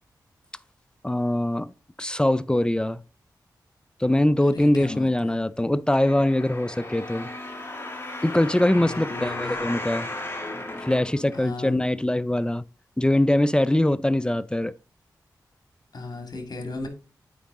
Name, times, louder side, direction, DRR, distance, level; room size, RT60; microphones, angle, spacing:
voice 1, 1.0-1.7 2.0-3.0 4.0-7.3 8.2-10.1 10.8-12.6 13.0-14.7, left 1 dB, 10° left, 0.4 m, -22 dB
voice 2, 4.5-5.3 8.8-9.6 11.3-11.9 15.9-16.9, left 2 dB, 60° left, 2.0 m, -36 dB
sound 1, 5.9-11.8 12.4-12.5, left 2 dB, 30° left, 1.6 m, -35 dB
8.5 x 4.7 x 3.7 m
cardioid pair, 40°, 8 cm